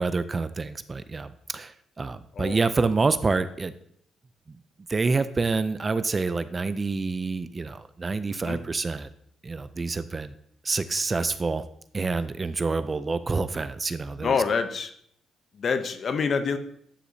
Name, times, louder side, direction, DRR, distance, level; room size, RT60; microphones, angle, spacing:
voice 1, 0.0-3.7 4.5-4.6 4.9-9.1 9.4-10.3 10.6-11.6 11.9-14.4, right 4 dB, 30° right, 13 dB, 0.4 m, -27 dB
voice 2, 2.4-2.9 8.3-8.6 14.2-14.9 15.5-16.6, left 5 dB, 50° left, 9 dB, 0.7 m, -27 dB
10.0 x 4.8 x 2.7 m, 0.69 s
cardioid pair, 90°, 0 cm